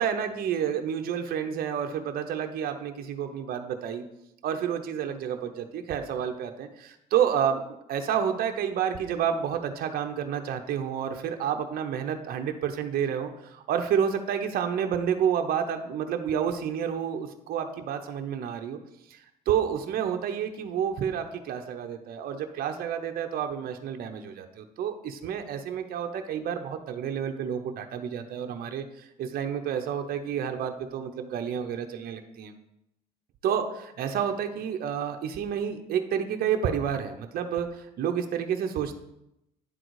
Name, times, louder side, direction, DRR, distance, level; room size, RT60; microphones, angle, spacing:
voice 1, 0.0-4.0 4.4-7.6 7.9-18.8 19.1-19.2 19.5-32.5 33.4-38.9, right 8 dB, 60° right, 5 dB, 0.7 m, -29 dB
9.7 x 3.9 x 4.7 m, 0.83 s
cardioid pair, 110°, 17 cm